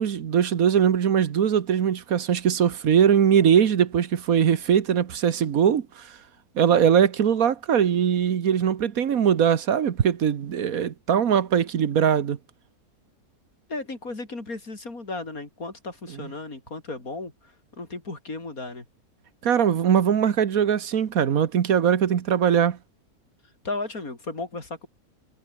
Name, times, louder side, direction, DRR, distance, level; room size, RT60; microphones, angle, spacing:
voice 1, 0.0-6.0 6.6-12.4 19.4-22.8, right 8 dB, 65° right, 1.6 m, -21 dB
voice 2, 13.7-18.8 23.6-24.9, left 3 dB, 65° left, 5.2 m, -35 dB
omnidirectional pair, 1.6 m